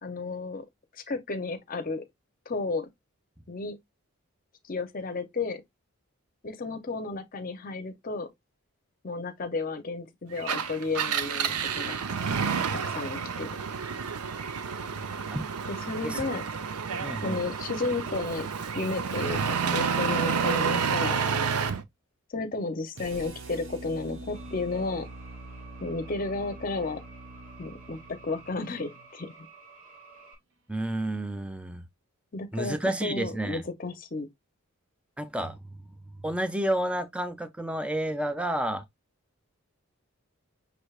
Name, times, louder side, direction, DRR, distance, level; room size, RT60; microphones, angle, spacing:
voice 1, 0.0-0.6 0.9-2.0 2.5-2.9 3.5-3.8 4.6-5.6 6.4-8.3 9.0-12.0 12.7-13.5 15.7-16.4 17.2-18.5 18.8-21.2 22.3-25.1 25.8-27.0 27.6-28.0 28.2-29.5 32.3-34.3, left 3 dB, 40° left, 0.6 m, -33 dB
Engine, 10.4-21.8, right 6 dB, 85° right, 0.6 m, -30 dB
voice 2, 14.9-15.5 16.0-16.3 17.0-17.4 30.7-31.8 32.5-33.6 35.2-35.6 36.2-38.8, right 1 dB, 5° right, 0.4 m, -30 dB
sound 1, 23.0-29.1, right 1 dB, 55° right, 0.9 m, -44 dB
sound 2, 24.3-30.3, right 4 dB, 35° right, 1.6 m, -52 dB
6.1 x 3.3 x 2.3 m
head